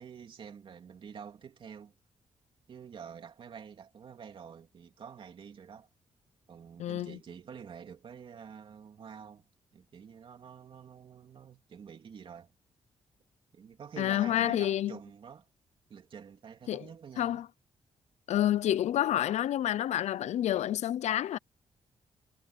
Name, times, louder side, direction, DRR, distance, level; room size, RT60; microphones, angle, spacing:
voice 1, 0.0-1.9 2.7-5.9 6.5-12.5 13.5-15.5 15.9-17.4, right 7 dB, 50° right, 3.2 m, -48 dB
voice 2, 6.8-7.2 14.0-15.0 16.7-16.8 17.2-17.5 18.3-21.4, left 12 dB, 80° left, 0.6 m, -29 dB
wide cardioid pair, 155°, 12 cm